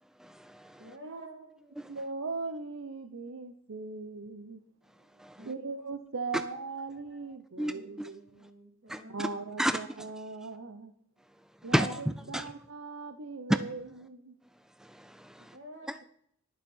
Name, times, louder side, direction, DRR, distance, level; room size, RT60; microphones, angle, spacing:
voice 1, 0.2-1.0 1.8-1.9 5.2-5.5 7.6-8.1 8.9-9.3 9.6-9.8 11.7-12.5 13.5-13.6 14.8-15.6 15.9-16.0, equal, 5° right, 12 dB, 0.3 m, -32 dB
voice 2, 0.8-1.5 5.4-5.7 7.7-9.4 12.4-12.5 15.5-15.9, right 1 dB, 60° right, 3 dB, 3.0 m, -50 dB
voice 3, 1.9-4.6 5.5-8.2 9.1-10.9 11.6-14.3, right 4 dB, 85° right, 9 dB, 0.8 m, -39 dB
11.5 x 7.0 x 5.5 m, 0.67 s
head